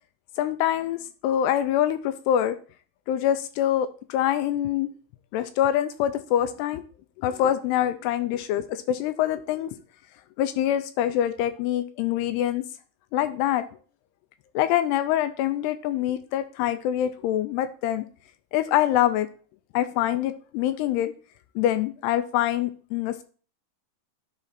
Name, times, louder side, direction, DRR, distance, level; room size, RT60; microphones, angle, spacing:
voice 1, 0.4-2.6 3.1-4.9 5.3-6.8 7.2-9.8 10.4-12.6 13.1-13.6 14.6-18.1 18.5-19.3 19.7-21.1 21.6-23.2, left 11 dB, 85° left, 11 dB, 2.4 m, -25 dB
10.0 x 4.0 x 4.2 m, 0.40 s
omnidirectional pair, 5.0 m